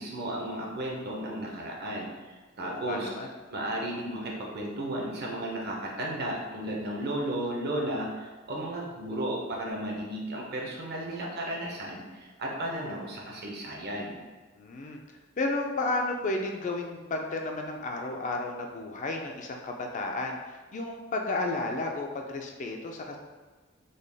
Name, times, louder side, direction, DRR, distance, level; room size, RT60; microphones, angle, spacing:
voice 1, 0.0-3.1 3.5-14.2, right 1 dB, 55° right, -1 dB, 0.7 m, -34 dB
voice 2, 2.6-3.3 14.6-15.0 15.4-23.2, left 2 dB, 40° left, 2 dB, 0.4 m, -32 dB
3.9 x 2.2 x 3.4 m, 1.3 s
head